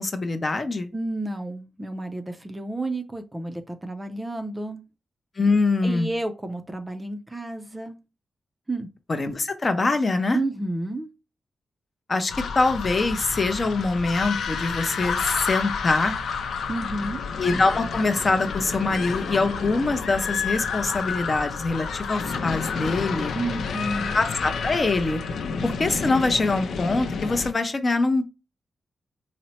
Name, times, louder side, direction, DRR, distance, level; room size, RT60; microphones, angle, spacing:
voice 1, 0.0-0.9 5.4-6.1 9.1-10.4 12.1-16.2 17.4-23.3 24.1-25.2 25.6-28.3, left 3 dB, 35° left, 8 dB, 0.5 m, -24 dB
voice 2, 0.9-4.8 5.8-8.0 8.7-8.9 10.3-11.1 16.7-17.2 23.3-24.1, right 2 dB, 15° right, 7 dB, 0.4 m, -31 dB
sound 1, 12.3-27.5, left 5 dB, 90° left, 0.5 m, -30 dB
4.2 x 2.0 x 4.1 m, 0.30 s
wide cardioid pair, 115°, 0 cm